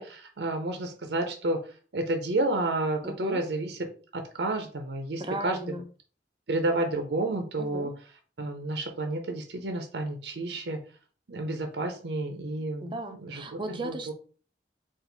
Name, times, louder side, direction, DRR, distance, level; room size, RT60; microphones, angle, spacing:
voice 1, 0.0-1.6 1.9-3.8 4.1-5.6 6.5-7.9 8.4-10.8 11.3-12.9 13.2-13.4 13.8-14.1, right 2 dB, 65° right, 5 dB, 0.6 m, -30 dB
voice 2, 3.0-3.4 5.2-5.9 7.6-7.9 12.8-14.1, right 1 dB, 30° right, 5 dB, 0.6 m, -36 dB
4.4 x 2.5 x 3.9 m, 0.40 s
head